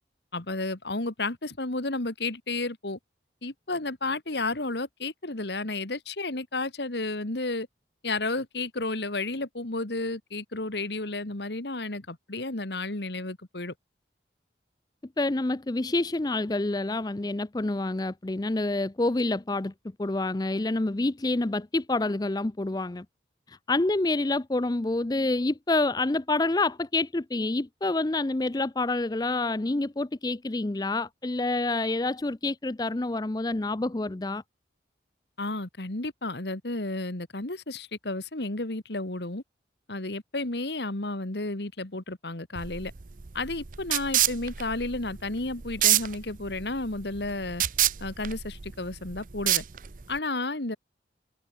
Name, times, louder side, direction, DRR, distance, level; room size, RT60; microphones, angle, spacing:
voice 1, 0.3-3.0 3.4-7.7 8.0-13.7 35.4-39.4 39.9-42.9 43.3-47.6 48.0-49.6 50.1-50.8, left 2 dB, 70° left, 2.1 m, -32 dB
voice 2, 15.2-19.7 20.0-23.1 23.5-34.4, left 2 dB, 20° left, 0.5 m, -27 dB
sound 1, 42.6-50.2, right 13 dB, 45° right, 0.6 m, -28 dB
head